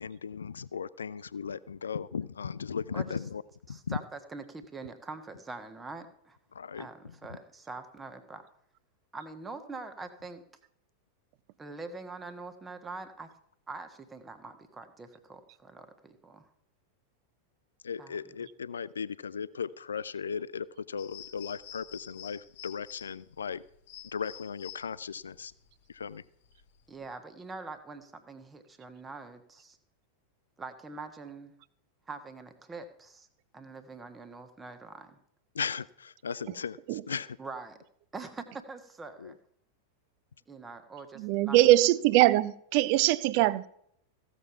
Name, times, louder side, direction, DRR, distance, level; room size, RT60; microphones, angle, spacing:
voice 1, 0.0-3.4 3.7-4.0 6.5-6.9 7.3-7.4 17.8-23.6 24.1-25.5 25.9-26.2 35.5-37.4 39.2-39.3, left 6 dB, 70° left, 0.4 m, -37 dB
voice 2, 3.7-6.4 6.7-8.4 9.1-10.4 11.6-13.3 13.7-16.5 18.0-18.2 26.9-29.8 30.6-31.5 32.1-33.3 33.5-35.2 37.4-37.8 38.1-39.4 40.5-41.7, right 3 dB, 15° right, 1.2 m, -44 dB
sound 1, 21.0-27.1, left 11 dB, 50° left, 1.3 m, -49 dB
voice 3, 41.2-43.7, right 16 dB, 45° right, 0.5 m, -22 dB
15.5 x 7.1 x 5.7 m
figure-of-eight pair, 90°, 0 cm